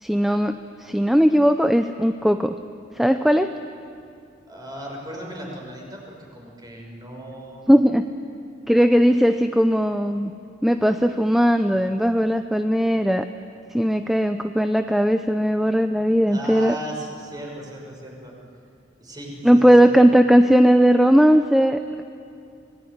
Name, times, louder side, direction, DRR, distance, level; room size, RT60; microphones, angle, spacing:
voice 1, 0.0-2.5 2.9-3.5 7.7-8.1 8.7-10.3 10.6-13.3 13.7-16.8 19.4-22.0, equal, ahead, 8 dB, 0.5 m, -18 dB
voice 2, 4.5-7.6 16.3-18.3 19.0-19.9, right 1 dB, 20° right, -1 dB, 5.8 m, -36 dB
25.5 x 19.0 x 9.6 m, 2.4 s
head